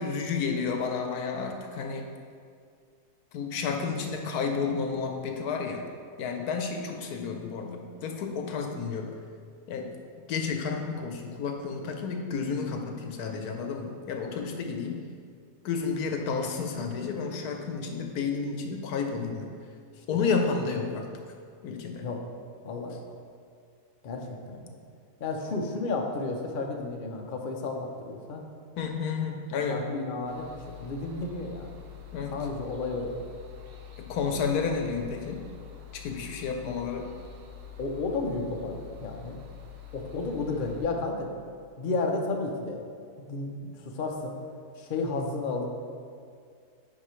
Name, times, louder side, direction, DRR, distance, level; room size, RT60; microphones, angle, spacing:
voice 1, 0.0-2.1 3.3-5.9 6.2-9.1 9.7-9.9 10.3-15.0 15.6-19.5 20.1-21.1 21.6-22.0 28.8-29.8 32.1-32.4 34.0-35.4 35.9-37.1, left 5 dB, 75° left, 3 dB, 1.2 m, -31 dB
voice 2, 22.6-23.0 24.0-24.7 25.2-28.5 29.7-31.8 32.3-33.2 37.8-39.4 39.9-41.3 41.8-42.8 43.2-44.4 44.8-45.7, left 3 dB, 50° left, 1 dB, 0.6 m, -32 dB
sound 1, 30.3-40.9, left 9 dB, 85° right, 1.3 m, -46 dB
10.0 x 4.8 x 3.1 m, 2.2 s
omnidirectional pair, 1.7 m